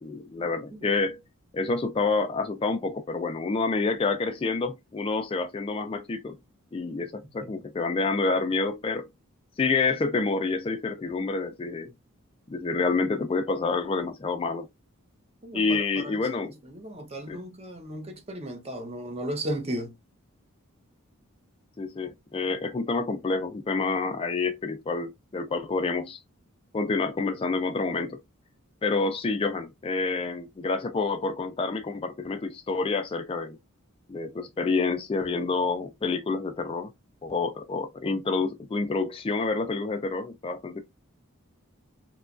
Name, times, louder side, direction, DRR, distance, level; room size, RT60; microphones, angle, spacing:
voice 1, 0.0-1.2 1.5-6.4 6.7-9.1 9.6-11.9 12.5-14.7 15.5-16.5 17.3-17.4 21.8-26.2 26.7-28.2 28.8-33.6 34.1-36.9 37.2-40.8, left 3 dB, 25° left, 0.3 m, -28 dB
voice 2, 15.4-15.8 16.0-16.1 16.7-19.9, right 1 dB, 30° right, 0.6 m, -34 dB
2.9 x 2.3 x 2.4 m
head